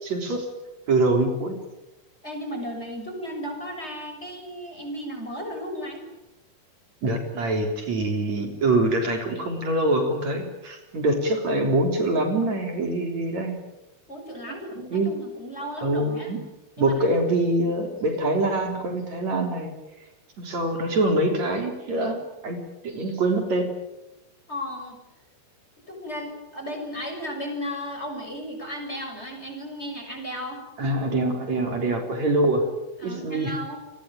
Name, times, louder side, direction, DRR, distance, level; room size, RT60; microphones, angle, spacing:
voice 1, 0.0-0.5 0.9-1.6 7.0-13.5 14.9-15.1 15.8-16.4 16.8-19.7 20.4-22.6 22.8-23.7 30.8-32.6 33.0-33.5, right 2 dB, 55° right, 4 dB, 4.8 m, -24 dB
voice 2, 2.2-6.0 14.1-16.3 16.8-17.2 24.5-25.0 25.9-30.6 33.0-33.8, equal, 20° left, 3 dB, 6.4 m, -35 dB
29.5 x 20.0 x 9.1 m, 0.94 s
omnidirectional pair, 3.7 m